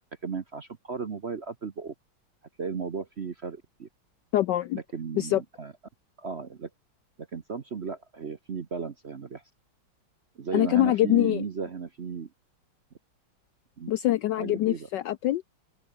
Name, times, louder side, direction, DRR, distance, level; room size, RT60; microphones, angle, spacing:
voice 1, 0.2-1.9 2.6-3.9 4.7-5.7 6.2-6.7 7.2-9.4 10.4-12.3 13.8-13.9 14.4-14.9, right 5 dB, 45° right, 0.9 m, -35 dB
voice 2, 4.3-4.8 5.2-5.4 10.5-11.4 13.9-15.4, left 14 dB, 75° left, 1.0 m, -24 dB
open air
omnidirectional pair, 2.4 m